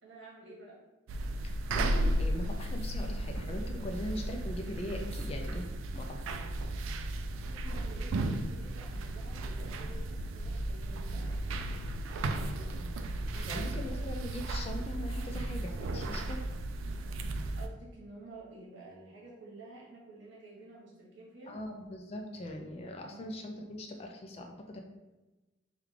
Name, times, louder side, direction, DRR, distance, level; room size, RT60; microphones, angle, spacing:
voice 1, 0.0-0.8 7.3-11.6 12.0-14.0 17.6-21.6 23.0-23.2, right 2 dB, 65° right, -5 dB, 1.1 m, -51 dB
sound 1, 1.1-17.7, right 1 dB, 85° right, 0.3 m, -34 dB
voice 2, 1.4-5.7 5.9-6.2 13.3-16.5 21.5-24.8, left 1 dB, 30° left, 2 dB, 0.3 m, -41 dB
3.2 x 2.3 x 3.6 m, 1.1 s
head